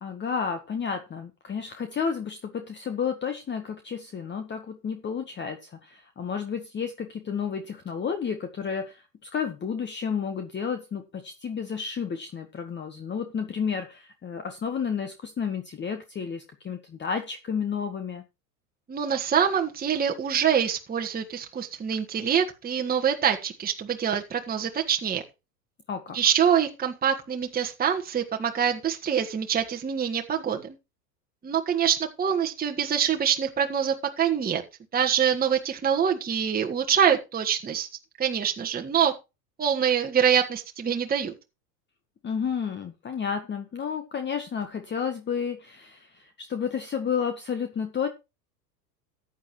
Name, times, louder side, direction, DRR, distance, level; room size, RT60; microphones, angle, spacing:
voice 1, 0.0-18.2 25.9-26.2 42.2-48.1, left 6 dB, 20° left, 8 dB, 1.4 m, -31 dB
voice 2, 18.9-25.2 26.1-30.8 31.4-34.6 34.9-37.9 38.2-39.1 39.6-41.3, right 8 dB, 20° right, 3 dB, 1.6 m, -25 dB
14.5 x 9.5 x 3.2 m, 0.27 s
hypercardioid pair, 95°, 49 cm